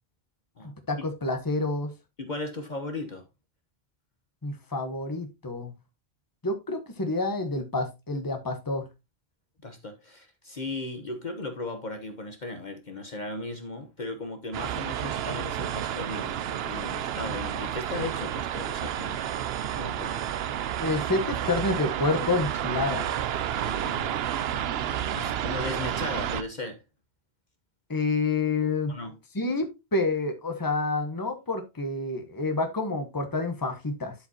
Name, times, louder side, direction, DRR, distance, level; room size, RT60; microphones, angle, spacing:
voice 1, 0.6-1.9 4.4-5.7 6.4-8.9 20.8-23.1 27.9-28.9 29.3-34.1, left 3 dB, 20° left, 1.2 m, -28 dB
voice 2, 2.2-3.2 9.6-16.4 16.7-19.2 19.7-20.3 23.5-24.1 25.1-26.8 28.9-29.1, left 2 dB, 45° left, 1.2 m, -36 dB
sound 1, 14.5-26.4, right 10 dB, 75° right, 0.8 m, -30 dB
12.0 x 5.2 x 2.8 m
omnidirectional pair, 1.1 m